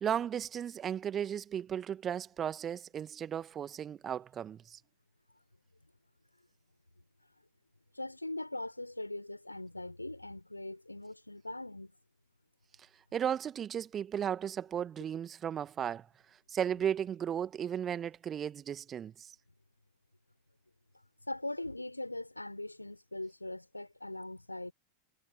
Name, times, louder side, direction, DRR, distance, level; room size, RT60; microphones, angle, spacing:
voice 1, 0.0-4.8 13.1-16.1 16.5-19.3, right 9 dB, 25° right, 1.6 m, -35 dB
voice 2, 8.0-11.9 21.3-24.7, left 2 dB, 85° left, 5.9 m, -41 dB
figure-of-eight pair, 90°, 0 cm